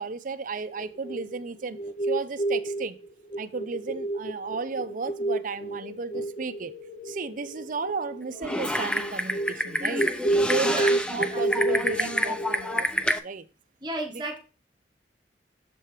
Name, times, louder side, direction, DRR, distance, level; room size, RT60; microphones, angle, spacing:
voice 1, 0.0-3.0 3.4-6.7 7.0-10.1 10.4-13.5, right 4 dB, 45° right, 0.5 m, -34 dB
sound 1, 0.6-12.8, right 2 dB, 40° left, 1.1 m, -30 dB
Typing, 8.4-13.2, left 1 dB, 5° left, 0.4 m, -28 dB
voice 2, 13.8-14.4, right 2 dB, 25° right, 1.1 m, -32 dB
6.9 x 4.4 x 4.8 m
head